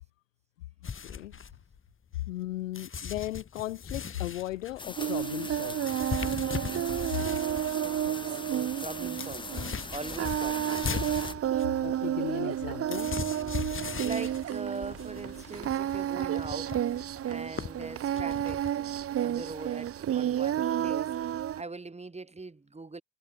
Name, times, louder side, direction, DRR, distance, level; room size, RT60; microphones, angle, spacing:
sound 1, 0.8-2.4 2.7-7.8 8.2-8.3 8.5-18.7, left 6 dB, 30° left, 4.0 m, -39 dB
voice 1, 1.0-1.3 2.2-6.0 11.8-13.2, left 15 dB, 75° left, 1.4 m, -36 dB
sound 2, 4.8-11.3, left 4 dB, 10° left, 0.9 m, -41 dB
Singing, 5.0-21.6, right 11 dB, 35° right, 1.0 m, -31 dB
voice 2, 7.4-11.3 14.0-18.7 19.2-21.1 21.5-23.0, right 3 dB, 15° right, 3.3 m, -42 dB
figure-of-eight pair, 55°, 38 cm